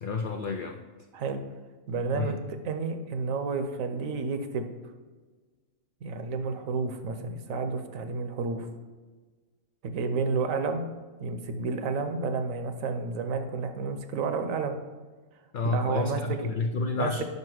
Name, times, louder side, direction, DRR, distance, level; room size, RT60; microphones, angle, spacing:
voice 1, 0.0-0.8 2.1-2.4 15.5-17.2, left 4 dB, 75° left, 4 dB, 0.4 m, -30 dB
voice 2, 1.9-4.7 6.0-8.7 9.8-10.9 11.2-14.8 15.6-16.2 16.9-17.2, right 4 dB, 80° right, 7 dB, 1.1 m, -31 dB
5.5 x 5.4 x 4.7 m, 1.4 s
omnidirectional pair, 1.4 m